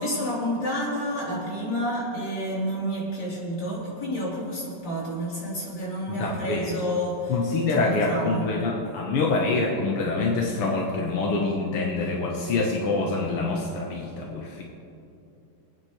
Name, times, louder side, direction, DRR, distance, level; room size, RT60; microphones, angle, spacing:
voice 1, 0.0-7.4 7.7-8.5, equal, 55° left, -7 dB, 4.3 m, -29 dB
voice 2, 6.1-6.8 7.3-14.6, left 3 dB, 90° left, -1 dB, 2.1 m, -26 dB
25.5 x 9.1 x 3.2 m, 2.6 s
omnidirectional pair, 2.4 m